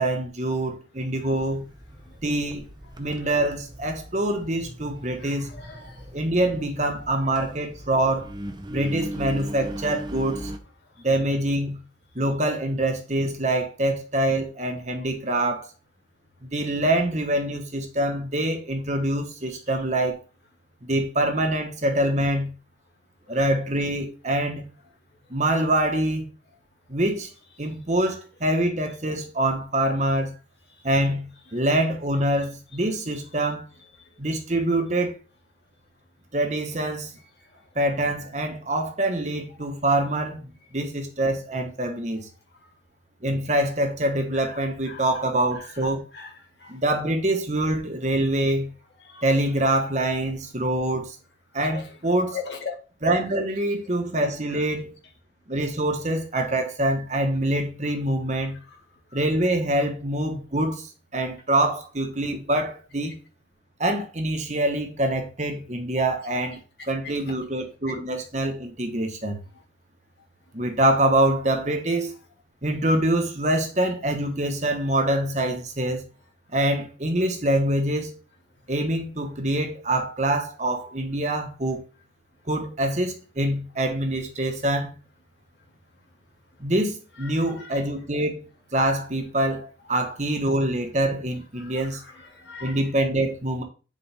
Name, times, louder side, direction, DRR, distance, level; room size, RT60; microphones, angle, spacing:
voice 1, 0.0-1.6 2.2-2.7 3.0-5.5 6.1-8.3 8.7-10.5 11.0-11.8 12.1-15.7 16.4-20.2 20.8-22.5 23.3-24.7 25.3-26.3 26.9-27.3 27.6-30.3 30.8-33.7 34.2-35.2 36.3-37.1 37.7-42.3 43.2-46.0 46.7-48.7 49.2-51.1 51.5-52.4 53.0-54.9 55.5-58.6 59.1-63.2 63.8-66.6 66.8-69.4 70.5-72.1 72.6-76.0 76.5-78.2 78.7-81.8 82.5-85.0 86.6-88.4 88.7-92.0 92.6-93.6, right 1 dB, 40° right, 1.4 m, -25 dB
Engine, 1.3-10.6, equal, 25° right, 0.8 m, -38 dB
voice 2, 5.2-6.0 44.3-44.6 44.9-45.0 46.1-46.3 46.6-46.7 49.0-49.2 51.6-51.9 52.3-52.7 54.5-54.6 59.1-59.2 87.2-87.8 91.6-92.8, left 6 dB, 65° left, 2.3 m, -39 dB
9.9 x 4.8 x 3.6 m
head